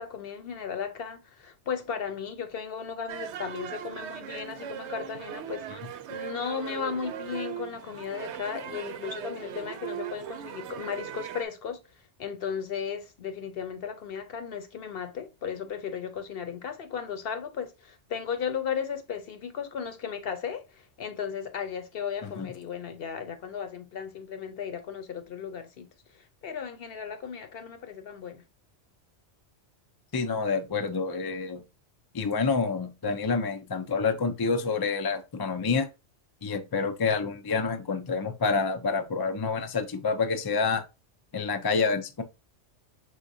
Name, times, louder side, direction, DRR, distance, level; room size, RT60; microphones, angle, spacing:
voice 1, 0.0-11.8 12.2-25.9 26.4-28.4, left 7 dB, 60° left, 0.9 m, -35 dB
sound 1, 3.1-11.5, right 10 dB, 75° right, 0.8 m, -39 dB
voice 2, 30.1-31.6 32.1-35.9 36.4-40.8 41.3-42.2, left 4 dB, 40° left, 0.3 m, -28 dB
4.9 x 3.7 x 2.7 m
omnidirectional pair, 1.2 m